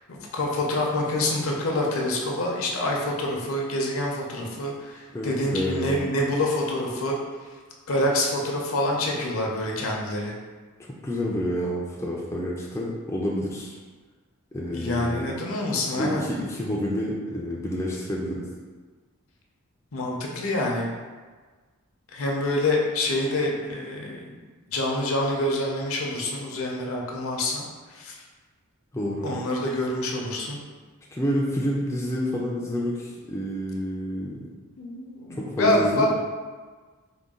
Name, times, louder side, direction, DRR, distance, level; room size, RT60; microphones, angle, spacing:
voice 1, 0.1-7.2 7.9-10.3 14.7-16.2 19.9-20.9 22.1-24.4 24.7-27.6 27.9-28.2 29.2-30.6 34.8-36.1, left 1 dB, 65° left, -1 dB, 0.6 m, -26 dB
voice 2, 5.1-6.1 11.0-13.8 14.5-15.3 16.0-18.5 28.9-29.3 31.1-34.5 35.4-36.1, equal, 10° left, -4 dB, 0.3 m, -29 dB
3.8 x 2.2 x 3.6 m, 1.4 s
head